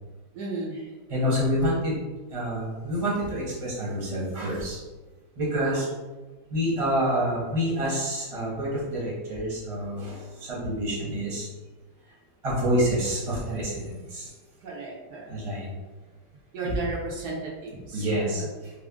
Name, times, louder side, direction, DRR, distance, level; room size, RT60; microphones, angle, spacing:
voice 1, 0.3-0.8 5.6-5.8 14.6-15.3 16.5-18.1, right 3 dB, 70° right, -3 dB, 1.1 m, -34 dB
voice 2, 1.1-2.0 2.3-4.8 5.4-5.9 6.5-11.5 12.4-14.3 15.3-15.7 16.6-16.7 17.9-18.7, equal, 25° right, -6 dB, 0.8 m, -27 dB
3.5 x 2.1 x 3.5 m, 1.2 s
omnidirectional pair, 1.9 m